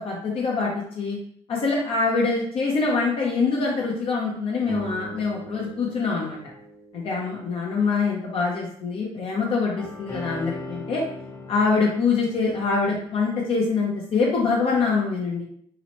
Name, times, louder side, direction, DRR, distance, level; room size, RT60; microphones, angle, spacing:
voice 1, 0.0-1.2 1.5-6.4 6.9-11.0 11.5-15.5, left 4 dB, 60° left, -3 dB, 0.6 m, -24 dB
sound 1, 4.6-9.2, right 2 dB, 25° right, 0.5 m, -42 dB
sound 2, 9.8-13.9 14.7-14.8, left 2 dB, 30° left, 0.8 m, -39 dB
2.9 x 2.0 x 2.9 m, 0.65 s
cardioid pair, 95°, 11 cm